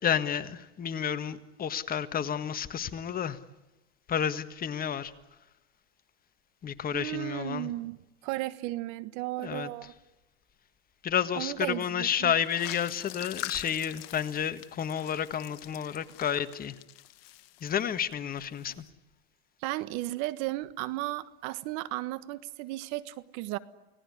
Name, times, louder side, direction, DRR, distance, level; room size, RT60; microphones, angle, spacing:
voice 1, 0.0-3.4 4.1-5.1 6.6-7.7 9.4-9.7 11.0-16.7 17.6-18.8, left 8 dB, 30° left, 1.6 m, -31 dB
voice 2, 6.9-9.9 11.3-12.3 19.6-23.6, right 17 dB, 55° right, 1.5 m, -35 dB
sound 1, 12.4-18.1 18.4-18.8, left 16 dB, 65° left, 1.5 m, -44 dB
30.0 x 18.5 x 9.9 m
hypercardioid pair, 110°, 31 cm